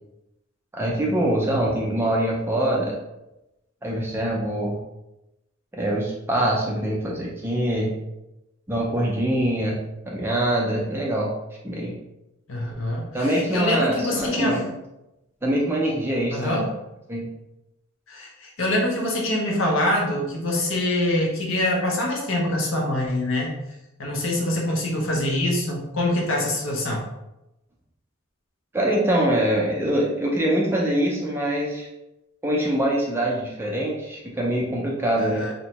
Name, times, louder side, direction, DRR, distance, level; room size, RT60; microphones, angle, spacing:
voice 1, 0.7-3.0 3.8-4.8 5.7-7.9 8.7-9.8 10.1-11.3 11.6-11.9 13.1-14.7 15.4-16.6 17.1-17.3 28.7-31.9 32.4-35.5, right 1 dB, 10° right, -3 dB, 0.3 m, -24 dB
voice 2, 12.5-14.6 16.3-16.7 18.1-23.5 24.0-27.0 35.2-35.5, left 1 dB, 70° left, -1 dB, 0.7 m, -25 dB
2.6 x 2.1 x 2.8 m, 0.93 s
head